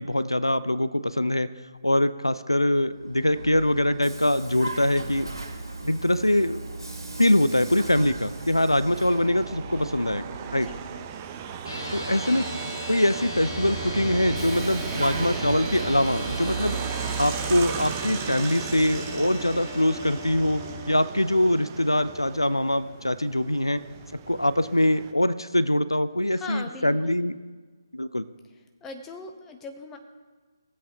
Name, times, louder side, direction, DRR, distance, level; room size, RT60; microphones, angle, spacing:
voice 1, 0.0-1.5 1.8-5.3 5.8-6.6 7.2-10.2 10.5-10.7 11.9-12.5 12.9-16.8 17.2-23.8 24.3-27.3 27.9-28.2, left 1 dB, 90° left, 15 dB, 0.4 m, -23 dB
Vehicle, 2.9-11.4 13.0-16.9, right 2 dB, 85° right, 2.7 m, -38 dB
sound 1, 6.7-25.1, right 7 dB, 25° right, 0.7 m, -36 dB
voice 2, 10.5-10.8 14.5-14.7 14.9-15.0 26.3-27.2 28.8-30.0, left 3 dB, 10° left, 5 dB, 0.8 m, -40 dB
sound 2, 11.6-21.0, left 1 dB, 65° left, 2.6 m, -38 dB
19.0 x 7.7 x 2.8 m, 1.4 s
figure-of-eight pair, 140°, 2 cm